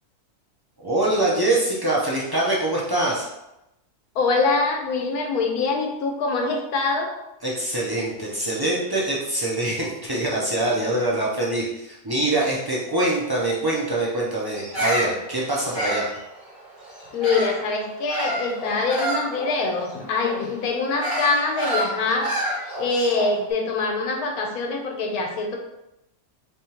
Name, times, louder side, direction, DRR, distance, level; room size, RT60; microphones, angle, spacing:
voice 1, 0.8-3.3 7.4-16.1, right 2 dB, 40° right, -5 dB, 0.3 m, -24 dB
voice 2, 4.1-7.1 17.1-22.3 22.8-25.6, left 3 dB, 85° left, 2 dB, 1.2 m, -24 dB
Bird vocalization bird call bird song, 14.5-17.7 18.1-23.4, right 1 dB, 15° right, 1.0 m, -29 dB
3.5 x 3.5 x 2.9 m, 0.89 s
omnidirectional pair, 1.5 m